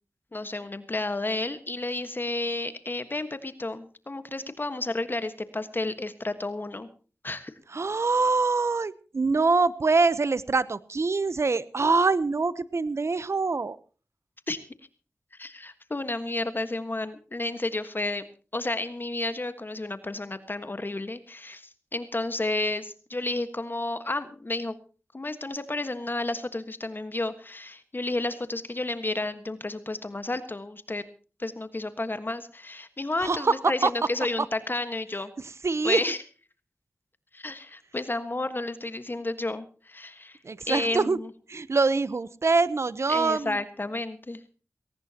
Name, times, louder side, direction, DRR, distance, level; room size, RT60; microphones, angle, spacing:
voice 1, 0.3-6.9 7.2-7.5 14.5-14.6 15.4-18.2 18.5-24.7 25.1-31.0 31.4-35.3 35.8-36.2 37.3-40.4 40.7-41.3 43.1-44.4, left 2 dB, 40° left, 10 dB, 1.5 m, -31 dB
voice 2, 7.7-13.8 33.2-33.5 33.8-33.9 34.4-34.5 35.4-36.0 40.4-41.2 41.5-43.6, right 4 dB, 60° right, 17 dB, 0.8 m, -24 dB
20.0 x 18.0 x 2.9 m, 0.37 s
cardioid pair, 50°, 5 cm